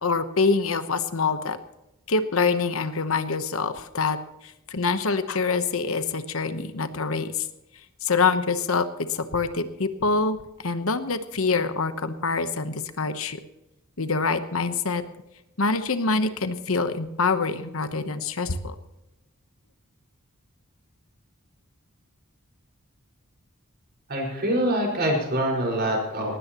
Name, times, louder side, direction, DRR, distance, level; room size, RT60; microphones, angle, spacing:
voice 1, 0.0-1.6 2.1-4.2 4.7-7.3 8.0-8.8 9.1-10.4 10.6-13.4 14.0-15.0 15.6-18.7, left 4 dB, 70° left, 10 dB, 1.1 m, -25 dB
voice 2, 24.1-26.4, right 1 dB, 45° right, 1 dB, 5.2 m, -25 dB
19.0 x 16.0 x 3.0 m, 0.93 s
head